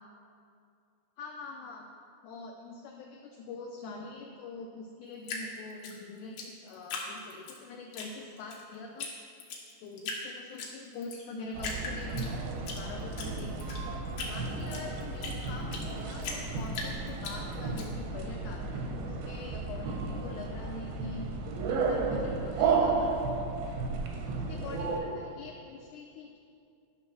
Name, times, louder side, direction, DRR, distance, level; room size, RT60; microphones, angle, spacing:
voice 1, 1.2-1.9 2.2-9.1 9.8-12.3 12.7-13.6 14.2-21.3 21.7-23.2 24.3-26.4, left 3 dB, 85° left, 2 dB, 1.7 m, -44 dB
Drip, 5.2-7.6 7.9-8.6 9.0-9.1 9.4-10.2 10.6-11.2 11.6-12.8 13.1-15.9 16.2-17.8, left 4 dB, 70° left, 2.6 m, -38 dB
sound 1, 11.5-25.0, right 4 dB, 90° right, 2.9 m, -33 dB
11.5 x 4.1 x 6.1 m, 2.4 s
omnidirectional pair, 4.2 m